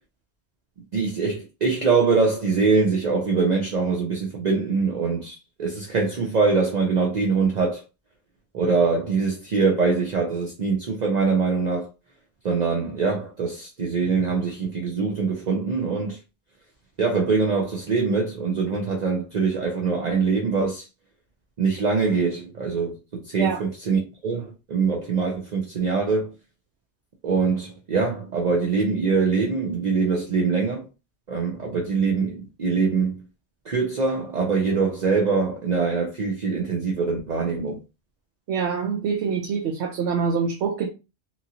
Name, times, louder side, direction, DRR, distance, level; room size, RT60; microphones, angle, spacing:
voice 1, 0.9-7.8 8.5-11.9 12.4-16.2 17.0-20.8 21.6-26.3 27.2-30.8 31.3-33.2 33.7-37.8, right 4 dB, 45° right, 0.6 m, -23 dB
voice 2, 38.5-40.9, right 6 dB, 85° right, 0.9 m, -25 dB
2.9 x 2.5 x 2.8 m
omnidirectional pair, 1.1 m